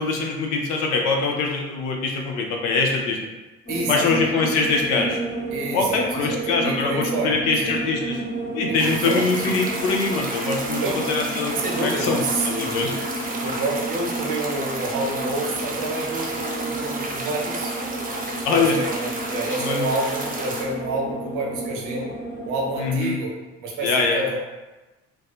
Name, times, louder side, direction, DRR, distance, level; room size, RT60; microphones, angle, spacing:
voice 1, 0.0-3.2 3.9-5.2 5.7-8.2 8.5-10.8 11.1-12.9 18.4-18.8 19.6-19.9 22.8-23.2 23.8-24.2, left 4 dB, 75° left, 1 dB, 0.5 m, -23 dB
sound 1, 3.7-23.0, right 2 dB, 25° left, 0.6 m, -31 dB
voice 2, 3.7-4.2 5.5-7.8 8.7-9.3 10.8-11.0 11.5-13.0 13.4-17.7 18.5-22.2 22.4-23.3 23.6-24.4, right 2 dB, 65° right, -1 dB, 0.7 m, -29 dB
sound 2, 8.8-20.6, right 2 dB, 25° right, 0.6 m, -32 dB
2.6 x 2.2 x 2.3 m, 1.1 s
hypercardioid pair, 60°, 34 cm